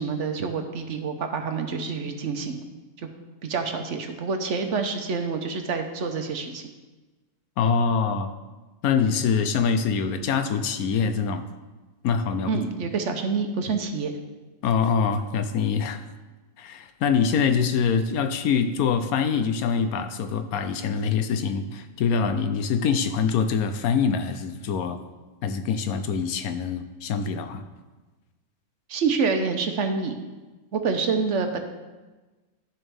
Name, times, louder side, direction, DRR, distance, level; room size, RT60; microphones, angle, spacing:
voice 1, 0.0-2.6 3.0-3.1 3.4-6.6 12.4-14.1 28.9-30.1 30.7-31.6, right 5 dB, 60° right, 5 dB, 1.1 m, -27 dB
voice 2, 7.6-8.3 8.8-11.5 12.0-12.5 14.6-16.0 16.6-25.0 25.4-27.6, left 6 dB, 85° left, 9 dB, 1.1 m, -24 dB
11.0 x 7.1 x 3.5 m, 1.2 s
omnidirectional pair, 1.5 m